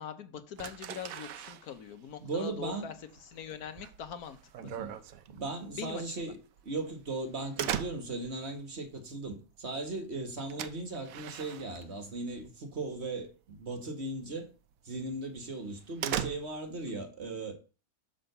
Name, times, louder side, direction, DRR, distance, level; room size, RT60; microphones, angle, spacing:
voice 1, 0.0-2.9 3.2-4.7 5.7-6.2, left 8 dB, 70° left, 1.4 m, -42 dB
sound 1, 0.6-12.5 12.7-13.3 13.6-13.8 14.2-14.3 14.7-14.8 15.2-16.9, right 10 dB, 65° right, 1.0 m, -40 dB
voice 2, 2.2-2.9 4.6-5.0 5.3-6.4 6.6-14.5 14.8-17.5, right 2 dB, 40° right, 1.6 m, -37 dB
9.1 x 3.9 x 6.7 m
omnidirectional pair, 1.7 m